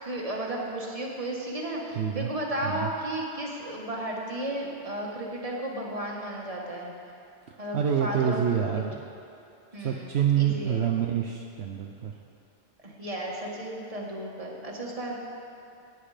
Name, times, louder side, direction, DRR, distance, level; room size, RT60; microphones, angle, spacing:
voice 1, 0.0-6.9 7.6-8.8 9.7-10.8 12.8-15.2, right 1 dB, 30° right, -2 dB, 1.7 m, -34 dB
voice 2, 2.0-2.3 2.6-2.9 7.5-9.0 9.8-12.2, right 9 dB, 70° right, 2 dB, 1.0 m, -27 dB
16.0 x 9.4 x 5.0 m, 2.7 s
omnidirectional pair, 1.2 m